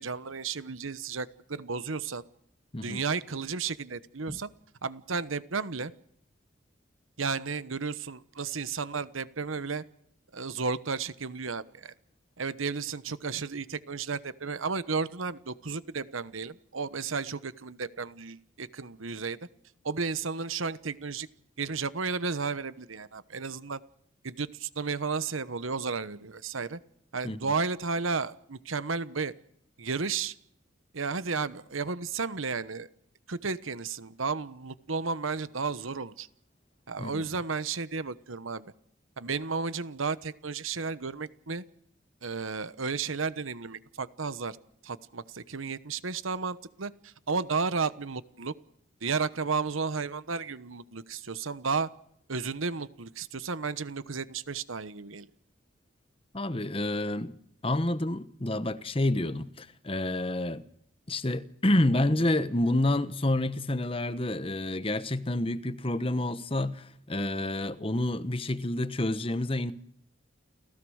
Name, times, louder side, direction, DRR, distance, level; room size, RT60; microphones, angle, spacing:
voice 1, 0.0-2.2 2.8-4.5 4.8-5.9 7.2-9.8 10.3-11.9 12.4-19.4 19.8-21.3 21.6-23.8 24.2-26.8 27.1-29.3 29.8-30.3 30.9-32.9 33.3-36.3 36.9-38.6 39.2-41.6 42.2-44.6 44.8-48.5 49.0-51.9 52.3-55.3, right 4 dB, 85° right, 1.1 m, -33 dB
voice 2, 37.0-37.3 56.3-57.3 57.6-60.6 61.1-69.7, left 1 dB, 25° left, 1.0 m, -29 dB
29.5 x 16.0 x 6.5 m
head